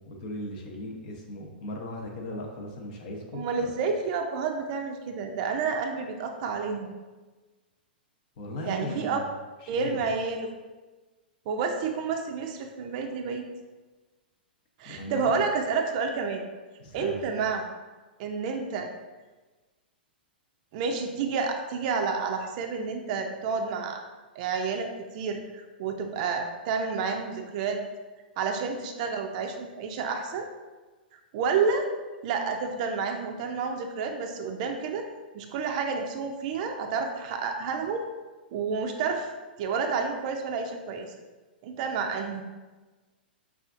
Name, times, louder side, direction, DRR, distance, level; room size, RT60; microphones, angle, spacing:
voice 1, 0.1-3.7 8.4-9.2 9.6-10.1 14.9-15.3 16.8-17.2, left 1 dB, 50° left, 0 dB, 0.7 m, -38 dB
voice 2, 3.3-7.0 8.7-9.2 9.7-10.6 11.5-13.5 14.8-16.4 16.9-17.6 18.2-18.9 20.7-24.0 24.4-27.8 28.4-30.5 31.1-31.9 32.2-35.0 35.3-38.0 38.5-39.3 39.6-41.1 41.6-42.4, right 5 dB, 45° right, 4 dB, 0.4 m, -30 dB
5.5 x 2.4 x 2.4 m, 1.3 s
hypercardioid pair, 115°, 6 cm